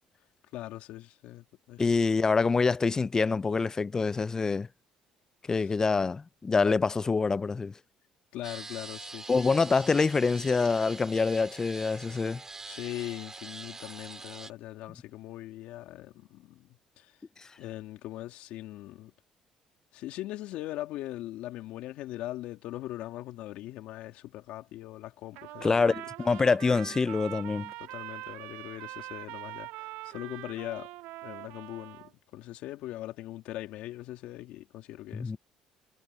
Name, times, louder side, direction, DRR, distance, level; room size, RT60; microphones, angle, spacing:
voice 1, 0.5-2.0 5.6-5.7 8.3-9.3 12.7-16.7 17.0-17.1 17.6-19.1 19.9-25.9 27.8-30.9 31.2-35.4, left 15 dB, 75° left, 2.5 m, -40 dB
voice 2, 1.8-4.7 5.5-7.7 9.3-12.4 25.6-27.7 35.1-35.4, left 4 dB, 25° left, 0.4 m, -26 dB
sound 1, 8.4-14.5, right 3 dB, 25° right, 4.6 m, -44 dB
Trumpet, 25.3-32.1, right 19 dB, 85° right, 2.8 m, -43 dB
supercardioid pair, 70°, 2 cm